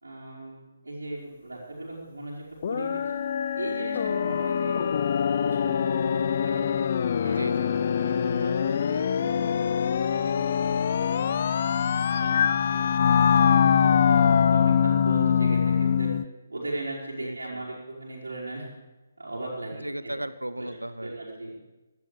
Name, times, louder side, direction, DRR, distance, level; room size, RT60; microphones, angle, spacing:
voice 1, 0.0-3.1 3.6-6.7 7.2-7.4 7.7-10.9 11.2-11.4 11.9-16.1 16.5-18.7 19.2-20.1 20.6-20.7 21.0-21.6, right 2 dB, 70° right, -9 dB, 4.6 m, -38 dB
sound 1, 2.6-16.2, left 7 dB, 40° left, 0.5 m, -23 dB
voice 2, 7.2-7.7 17.2-17.6 19.8-21.1, right 1 dB, 85° right, 14 dB, 0.8 m, -35 dB
17.0 x 12.5 x 5.0 m, 1.1 s
figure-of-eight pair, 140°, 0 cm